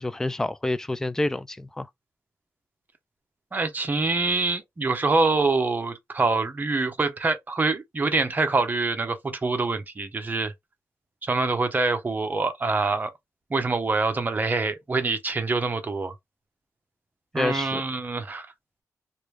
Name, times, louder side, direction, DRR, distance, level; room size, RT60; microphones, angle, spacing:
voice 1, 0.0-1.9 17.4-17.8, left 2 dB, 10° left, 0.3 m, -28 dB
voice 2, 3.5-10.5 11.2-13.1 13.5-16.1 17.3-18.5, right 3 dB, 30° right, 0.8 m, -25 dB
3.1 x 2.5 x 3.2 m
wide cardioid pair, 115°, 6 cm